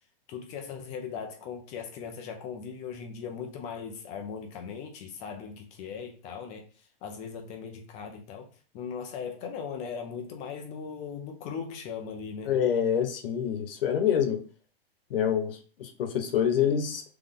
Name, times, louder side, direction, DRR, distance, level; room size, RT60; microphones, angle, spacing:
voice 1, 0.3-6.7 7.0-8.5 8.7-12.5, left 6 dB, 25° left, 0.6 m, -38 dB
voice 2, 12.4-14.4 15.1-17.0, left 8 dB, 70° left, 1.1 m, -26 dB
4.0 x 3.3 x 3.6 m
hypercardioid pair, 155°, 30 cm